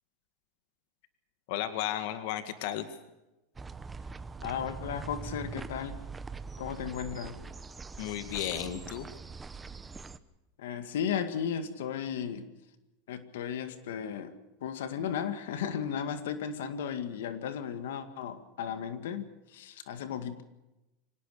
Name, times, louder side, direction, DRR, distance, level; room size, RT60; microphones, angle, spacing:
voice 1, 1.5-2.9 8.0-9.1, left 12 dB, 65° left, 9 dB, 2.0 m, -34 dB
sound 1, 3.5-10.2, right 4 dB, 15° right, 1.0 m, -43 dB
voice 2, 4.4-6.0 6.6-7.4 10.6-12.5 13.1-20.4, left 8 dB, 85° left, 9 dB, 2.0 m, -35 dB
25.0 x 18.0 x 6.8 m, 0.98 s
supercardioid pair, 140°, 0 cm